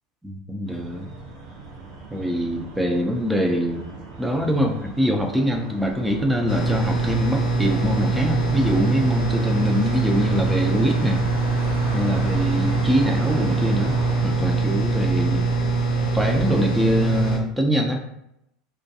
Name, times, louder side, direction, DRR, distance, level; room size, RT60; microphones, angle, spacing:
voice 1, 0.2-1.1 2.1-11.2 11.9-14.0 14.2-15.5 16.1-18.0, equal, 5° right, 2 dB, 0.5 m, -24 dB
sound 1, 0.7-14.2, right 3 dB, 60° right, 0.7 m, -37 dB
sound 2, 6.5-17.4, right 3 dB, 65° left, 0.5 m, -23 dB
2.3 x 2.2 x 2.7 m, 0.81 s
hypercardioid pair, 80°, 0 cm